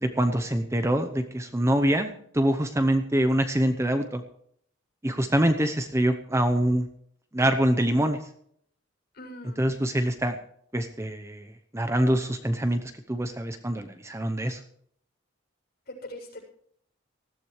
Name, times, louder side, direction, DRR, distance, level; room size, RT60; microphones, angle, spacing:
voice 1, 0.0-4.2 5.0-6.9 7.3-8.3 9.6-10.3 10.7-12.8 13.1-14.6, right 1 dB, 15° right, 8 dB, 0.8 m, -25 dB
voice 2, 9.1-9.8 15.9-16.4, left 1 dB, 45° left, -1 dB, 7.4 m, -42 dB
19.5 x 15.0 x 3.3 m, 0.66 s
head